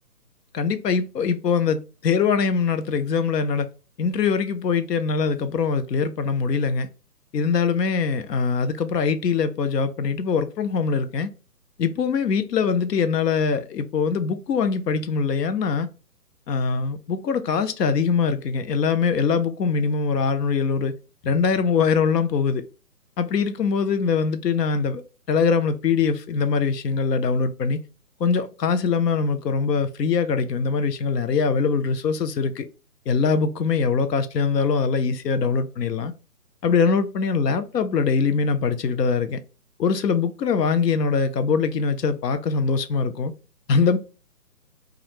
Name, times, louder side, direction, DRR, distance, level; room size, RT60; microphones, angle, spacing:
voice 1, 0.5-3.7 4.0-6.9 7.3-11.3 11.8-15.9 16.5-20.9 21.2-22.6 23.2-27.8 28.2-32.7 33.1-36.1 36.6-39.4 39.8-43.3 43.7-44.0, left 5 dB, 90° left, 0.6 m, -22 dB
2.4 x 2.0 x 2.9 m
hypercardioid pair, 170°, 47 cm